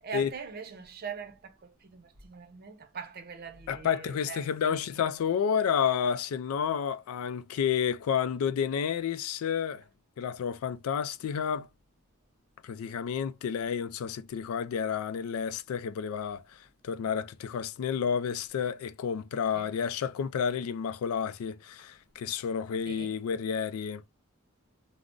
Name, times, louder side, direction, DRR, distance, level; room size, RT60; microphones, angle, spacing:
voice 1, 0.0-4.8 19.5-19.7 22.9-23.1, right 6 dB, 45° right, 0.6 m, -42 dB
voice 2, 3.7-9.8 10.2-11.7 12.6-16.6 16.8-24.0, left 7 dB, 80° left, 0.3 m, -30 dB
3.5 x 2.0 x 2.5 m
head